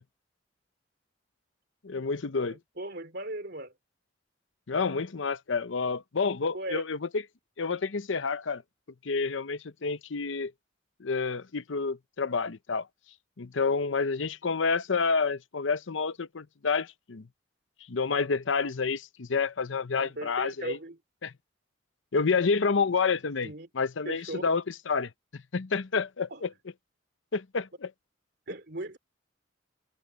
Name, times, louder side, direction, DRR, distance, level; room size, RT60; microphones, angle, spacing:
voice 1, 1.8-2.6 4.7-7.2 7.6-8.6 9.0-10.5 11.0-12.9 13.4-17.3 17.9-20.8 21.2-21.3 22.1-26.5 27.3-27.9, left 4 dB, 80° left, 0.7 m, -29 dB
voice 2, 2.5-3.7 6.5-6.8 20.0-21.0 23.4-23.7 24.1-24.4 26.3-26.4 28.5-29.0, right 1 dB, 60° right, 3.6 m, -37 dB
head